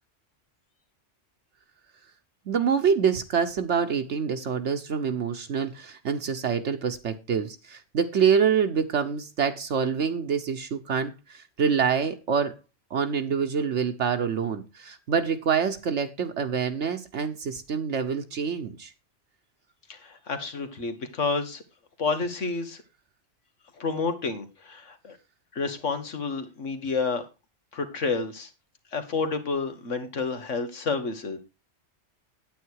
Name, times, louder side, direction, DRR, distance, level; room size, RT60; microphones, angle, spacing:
voice 1, 2.5-12.5 12.9-18.9, right 6 dB, 70° right, 6 dB, 1.2 m, -26 dB
voice 2, 19.9-21.6 22.0-22.8 23.8-25.2 25.5-27.2 27.7-28.5 28.9-31.4, left 4 dB, 85° left, 8 dB, 2.0 m, -29 dB
9.2 x 8.9 x 4.7 m, 0.27 s
omnidirectional pair, 1.2 m